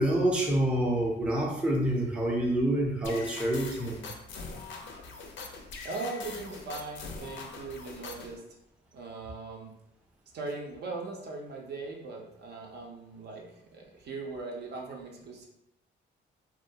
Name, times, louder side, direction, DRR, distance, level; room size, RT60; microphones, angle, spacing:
voice 1, 0.0-4.1, right 1 dB, 5° right, -2 dB, 0.5 m, -27 dB
sound 1, 3.0-8.4, left 4 dB, 70° left, 0.4 m, -42 dB
voice 2, 5.8-8.4 8.9-9.7 10.3-15.5, right 3 dB, 55° right, 0 dB, 0.6 m, -39 dB
2.3 x 2.0 x 2.7 m, 0.82 s
cardioid pair, 90°, 20 cm